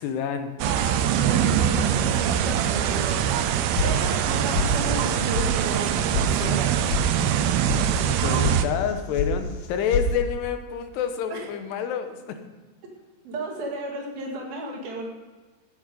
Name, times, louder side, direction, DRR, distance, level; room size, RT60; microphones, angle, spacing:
voice 1, 0.0-0.5 7.7-12.4, left 8 dB, 85° left, 7 dB, 3.1 m, -28 dB
voice 2, 0.6-6.7 11.3-11.5 13.3-15.1, right 2 dB, 65° right, 0 dB, 3.7 m, -33 dB
sound 1, 0.6-8.6, right 9 dB, 85° right, 2.7 m, -23 dB
sound 2, 3.8-4.3 4.5-5.1 5.3-5.5 5.8-6.3 6.5-7.0 7.3-7.8 8.1-8.6 8.8-9.3 9.6-10.1, left 4 dB, 65° left, 1.7 m, -27 dB
14.0 x 8.7 x 5.2 m, 1.3 s
omnidirectional pair, 4.6 m